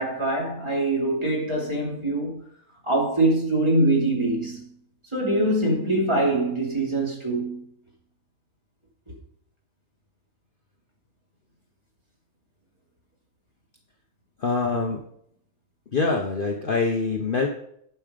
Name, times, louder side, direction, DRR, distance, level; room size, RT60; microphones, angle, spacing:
voice 1, 0.0-2.5 2.8-4.7 5.1-7.7, right 2 dB, 20° right, 2.7 m, -23 dB
voice 2, 14.4-15.0 15.9-17.5, left 4 dB, 40° left, 1.0 m, -24 dB
11.0 x 5.8 x 5.1 m
omnidirectional pair, 1.5 m